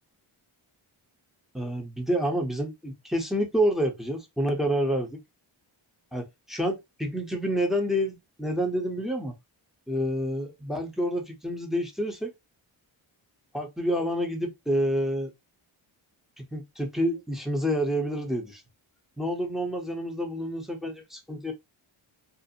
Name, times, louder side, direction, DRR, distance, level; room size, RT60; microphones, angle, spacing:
voice 1, 1.5-5.2 6.1-9.3 9.9-12.3 13.5-15.3 16.4-18.6 19.2-21.5, equal, ahead, 0.7 m, -28 dB
2.5 x 2.0 x 2.6 m
wide cardioid pair, 80°, 49 cm